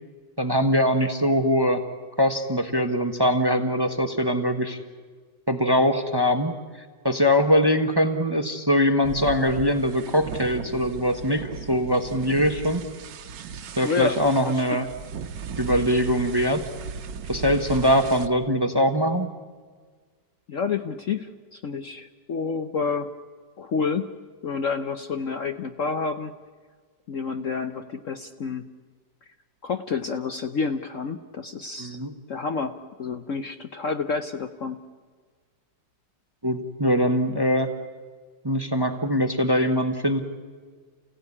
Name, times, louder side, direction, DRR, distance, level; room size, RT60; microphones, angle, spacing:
voice 1, 0.4-1.8 2.2-4.8 5.5-6.5 7.0-12.8 13.8-14.9 15.6-16.6 17.3-19.3 31.8-32.1 36.4-37.7 38.4-40.2, equal, 15° right, 8 dB, 1.1 m, -22 dB
sound 1, 9.0-18.3, right 6 dB, 80° right, 1.7 m, -37 dB
voice 2, 13.8-14.2 14.4-14.8 20.5-23.1 23.6-24.1 24.4-26.3 27.1-28.7 29.6-32.0 32.3-34.8, left 5 dB, 55° left, 8 dB, 1.0 m, -29 dB
29.0 x 16.5 x 9.8 m, 1.5 s
omnidirectional pair, 2.0 m